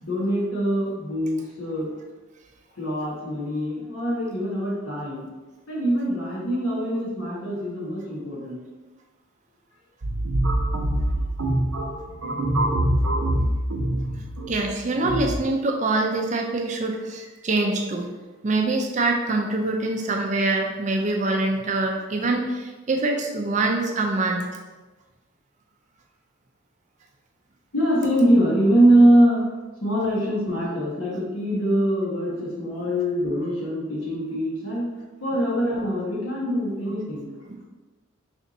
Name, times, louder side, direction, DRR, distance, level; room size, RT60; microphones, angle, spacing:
voice 1, 0.0-1.9 2.7-5.3 5.7-8.6 27.7-34.9 35.2-37.3, right 1 dB, 90° left, -6 dB, 1.4 m, -23 dB
sound 1, 10.0-15.4, right 1 dB, 85° right, 0.6 m, -24 dB
voice 2, 14.5-18.1 18.4-24.6 37.5-37.6, right 2 dB, 35° right, 2 dB, 0.4 m, -24 dB
3.4 x 2.7 x 3.9 m, 1.2 s
head